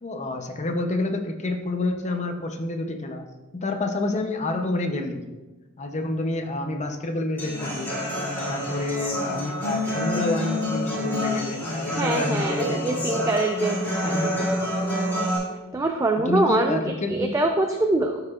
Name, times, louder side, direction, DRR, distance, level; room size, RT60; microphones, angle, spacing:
voice 1, 0.0-3.3 3.5-5.2 5.8-8.0 8.4-13.1 13.6-14.4 16.3-17.3, left 2 dB, 35° left, 5 dB, 0.6 m, -28 dB
Human voice / Acoustic guitar, 7.4-15.4, left 1 dB, 10° left, 2.1 m, -28 dB
voice 2, 12.0-14.6 15.7-18.2, right 2 dB, 15° right, 4 dB, 0.3 m, -24 dB
12.0 x 4.9 x 2.4 m, 1.2 s
head